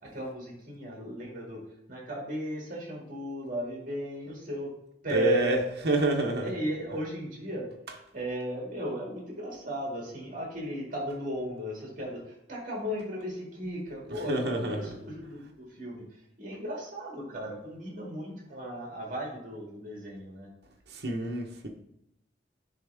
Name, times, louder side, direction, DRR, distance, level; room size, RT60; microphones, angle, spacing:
voice 1, 0.0-4.7 5.0-5.6 6.4-7.7 8.1-20.5, equal, 50° right, -2 dB, 2.2 m, -36 dB
voice 2, 5.1-6.5 7.9-8.0 14.1-14.9 20.9-21.7, right 2 dB, 65° right, 0 dB, 1.0 m, -28 dB
10.5 x 3.6 x 3.5 m, 0.81 s
head